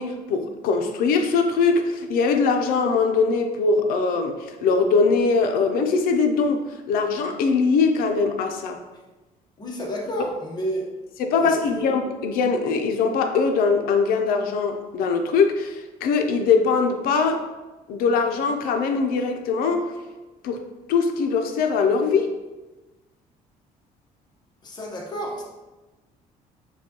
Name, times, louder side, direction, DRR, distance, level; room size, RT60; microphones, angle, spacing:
voice 1, 0.0-8.8 11.2-17.5 17.9-19.9 20.4-20.6 20.9-22.3, left 4 dB, 80° left, 5 dB, 0.5 m, -22 dB
voice 2, 9.6-10.8 11.4-11.9 24.6-25.4, equal, 30° left, -1 dB, 0.9 m, -31 dB
6.8 x 2.3 x 2.9 m, 1.1 s
cardioid pair, 145°, 15 cm